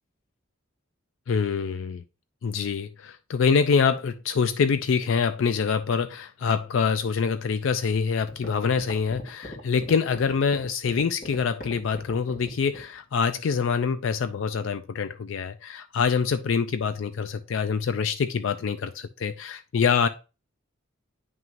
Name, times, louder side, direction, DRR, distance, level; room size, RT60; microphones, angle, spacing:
voice 1, 1.3-2.0 2.4-20.1, left 6 dB, 65° left, 0.4 m, -25 dB
sound 1, 8.3-12.9, left 1 dB, 45° left, 2.4 m, -40 dB
9.2 x 6.0 x 2.5 m
head